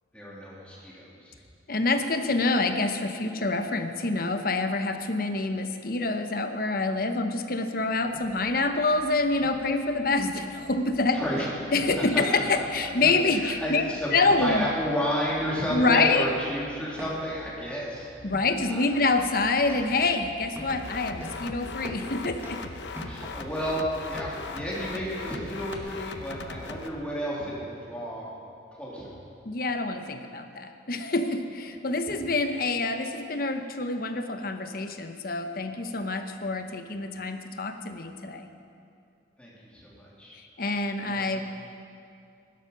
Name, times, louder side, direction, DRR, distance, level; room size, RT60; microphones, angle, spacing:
voice 1, 0.1-1.3 11.1-11.5 12.0-12.2 13.3-18.1 18.7-19.1 23.0-28.3 28.8-29.1 39.4-40.4 41.0-41.4, equal, 5° left, -6 dB, 3.1 m, -32 dB
voice 2, 1.7-11.2 11.7-13.8 14.1-14.7 15.7-16.3 18.2-22.6 29.4-38.5 40.6-41.4, left 3 dB, 55° left, 7 dB, 1.0 m, -26 dB
sound 1, 8.0-25.8, equal, 15° right, 1.8 m, -46 dB
sound 2, 20.7-26.9, left 4 dB, 80° left, 0.8 m, -39 dB
18.0 x 12.0 x 5.4 m, 2.4 s
head